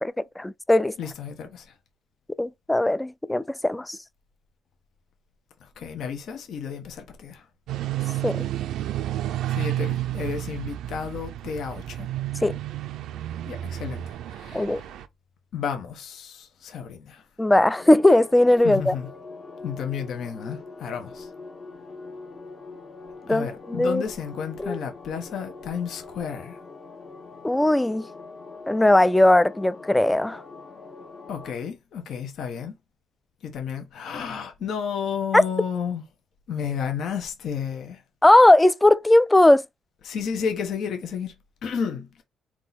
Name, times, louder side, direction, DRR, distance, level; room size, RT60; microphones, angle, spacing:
voice 1, 0.0-0.9 2.4-4.0 8.2-8.5 12.4-12.6 14.5-14.8 17.4-18.9 23.3-24.0 24.6-24.8 27.4-28.1 28.7-30.4 35.3-35.4 38.2-39.6, left 1 dB, 10° left, 0.3 m, -18 dB
voice 2, 1.0-1.7 5.6-7.4 9.5-12.1 13.5-14.9 15.5-17.2 18.6-19.1 19.6-21.3 23.3-26.6 31.3-32.7 33.4-36.0 36.5-38.0 40.0-41.3 41.6-42.1, left 7 dB, 70° left, 1.0 m, -32 dB
sound 1, 7.7-15.1, right 13 dB, 80° right, 0.4 m, -31 dB
sound 2, 17.7-31.5, left 3 dB, 40° left, 1.1 m, -43 dB
3.7 x 3.0 x 4.0 m
cardioid pair, 90°, 0 cm